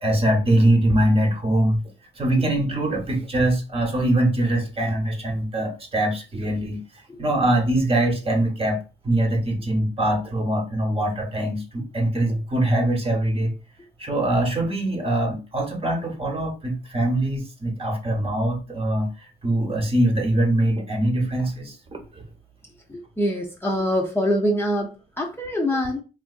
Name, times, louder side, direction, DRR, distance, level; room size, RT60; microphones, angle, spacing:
voice 1, 0.0-1.8 2.2-6.8 7.2-13.5 14.0-21.8 22.1-22.2, right 1 dB, 30° right, 1.0 m, -23 dB
voice 2, 22.9-26.0, equal, 10° left, 0.7 m, -24 dB
3.7 x 2.5 x 2.4 m
cardioid pair, 90°, 20 cm